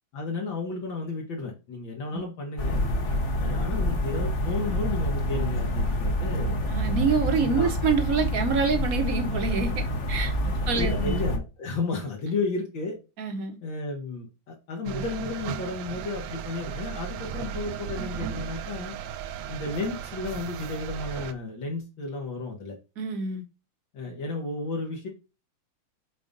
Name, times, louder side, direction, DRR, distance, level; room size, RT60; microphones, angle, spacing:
voice 1, 0.1-2.8 3.4-6.6 7.5-7.7 10.7-13.0 13.6-18.9 19.5-22.8 23.9-25.1, left 3 dB, 70° left, 2.1 m, -33 dB
sound 1, 2.6-11.4, equal, 45° left, 1.2 m, -27 dB
voice 2, 6.7-10.3 10.7-11.2 13.2-13.6 23.0-23.4, right 5 dB, 50° right, 1.4 m, -26 dB
sound 2, 14.9-21.3, right 9 dB, 75° right, 1.2 m, -35 dB
7.5 x 2.5 x 5.3 m
omnidirectional pair, 2.2 m